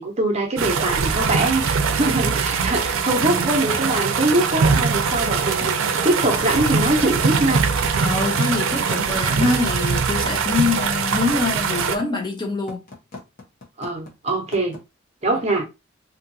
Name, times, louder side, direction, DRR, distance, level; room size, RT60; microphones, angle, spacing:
voice 1, 0.0-5.8 6.0-7.6 13.8-14.8 15.2-15.6, right 2 dB, 35° right, 0.7 m, -23 dB
sound 1, 0.6-12.0, right 5 dB, 80° right, 0.4 m, -22 dB
sound 2, 3.7-14.8, left 3 dB, 45° left, 0.9 m, -38 dB
voice 2, 8.0-12.8, left 3 dB, 20° left, 0.4 m, -24 dB
2.6 x 2.4 x 2.6 m
head